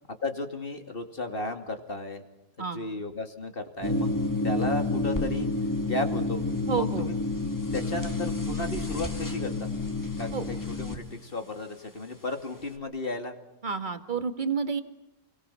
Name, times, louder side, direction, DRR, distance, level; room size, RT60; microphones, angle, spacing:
voice 1, 0.2-2.2 2.6-4.1 4.4-5.5 5.8-6.4 6.7-7.1 7.7-9.7 10.2-13.4, left 2 dB, 30° left, 6 dB, 2.6 m, -34 dB
sound 1, 3.8-11.0, left 2 dB, 10° left, 2.4 m, -29 dB
voice 2, 6.7-7.1 10.3-10.5 13.6-14.8, right 5 dB, 30° right, 8 dB, 1.9 m, -29 dB
29.5 x 23.5 x 5.7 m, 0.93 s
omnidirectional pair, 1.8 m